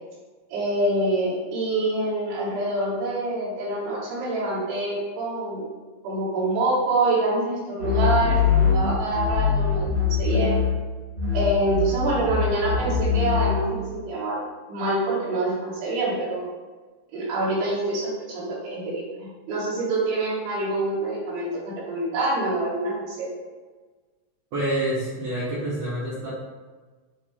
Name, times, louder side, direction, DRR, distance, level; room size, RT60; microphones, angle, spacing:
voice 1, 0.5-5.7 6.0-10.6 11.3-14.4 14.7-16.4 17.1-19.0 19.5-23.3, right 2 dB, 85° right, -8 dB, 3.6 m, -26 dB
sound 1, 7.8-10.9 11.1-13.7, left 7 dB, 40° right, 1.4 m, -23 dB
voice 2, 24.5-26.3, right 1 dB, 65° right, -8 dB, 1.8 m, -27 dB
8.2 x 3.2 x 3.6 m, 1.3 s
omnidirectional pair, 4.6 m